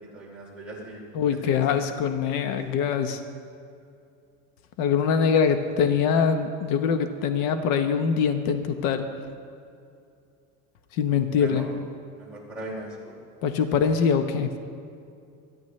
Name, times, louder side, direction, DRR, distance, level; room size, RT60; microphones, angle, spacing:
voice 1, 0.1-1.4 1.7-1.9 11.4-11.7 12.2-13.1, right 1 dB, 5° right, -7 dB, 3.5 m, -39 dB
voice 2, 1.1-3.2 4.8-9.1 11.0-11.7 13.4-14.5, left 6 dB, 80° left, 8 dB, 1.1 m, -23 dB
27.0 x 10.5 x 3.2 m, 2.4 s
cardioid pair, 170°, 35 cm